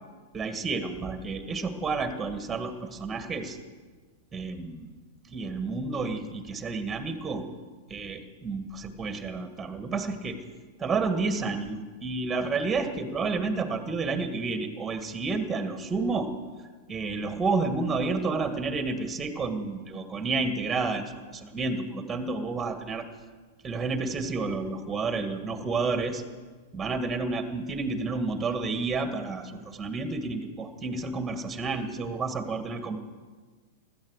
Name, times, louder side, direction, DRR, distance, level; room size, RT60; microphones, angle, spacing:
voice 1, 0.3-3.6 4.3-5.0 5.3-7.5 7.9-10.4 10.8-16.3 16.9-23.1 23.6-26.2 26.7-33.0, right 3 dB, 15° right, 8 dB, 2.0 m, -30 dB
16.0 x 12.5 x 6.5 m, 1.4 s
hypercardioid pair, 105°, 0 cm